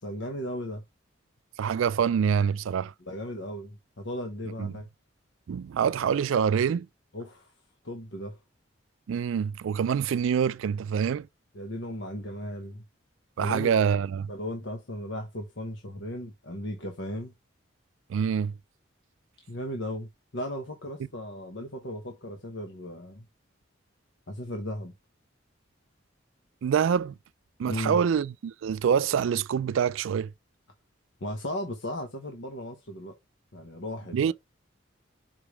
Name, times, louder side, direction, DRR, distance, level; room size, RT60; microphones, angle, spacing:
voice 1, 0.0-0.8 3.0-4.9 7.1-7.5 7.8-8.4 11.5-12.8 13.4-13.9 14.3-17.3 19.5-23.3 24.3-24.9 27.7-28.0 31.2-33.2 33.5-34.3, equal, 70° left, 1.2 m, -36 dB
voice 2, 1.6-2.9 4.6-4.7 5.5-6.9 9.1-11.3 13.4-14.3 18.1-18.5 26.6-27.1 27.6-30.3 34.1-34.3, right 7 dB, 80° right, 0.3 m, -25 dB
5.8 x 5.0 x 3.4 m
head